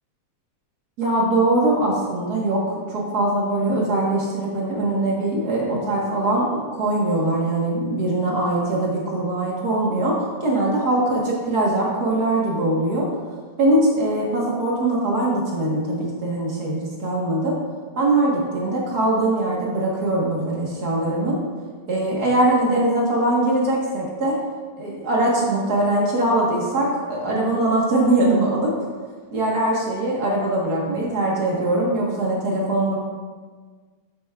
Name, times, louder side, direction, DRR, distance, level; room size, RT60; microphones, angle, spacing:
voice 1, 1.0-13.1 13.6-17.6 17.9-21.4 21.9-24.4 24.8-28.7 29.3-33.0, right 1 dB, 60° right, -4 dB, 0.9 m, -22 dB
12.5 x 8.0 x 2.4 m, 1.5 s
omnidirectional pair, 3.9 m